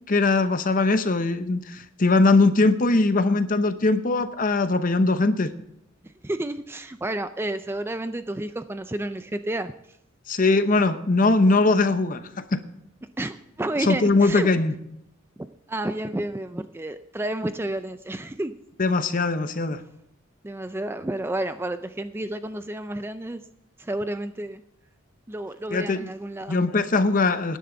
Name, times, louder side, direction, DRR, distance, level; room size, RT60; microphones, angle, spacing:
voice 1, 0.1-5.5 10.3-12.2 12.5-12.6 13.9-14.7 18.8-19.8 25.7-26.1 26.5-27.6, left 3 dB, 40° left, 10 dB, 0.8 m, -21 dB
voice 2, 6.2-9.7 13.2-14.5 15.4-18.5 20.4-23.4 23.8-24.6 25.3-26.6, right 1 dB, 10° right, 10 dB, 0.4 m, -31 dB
18.0 x 10.5 x 3.9 m, 0.80 s
head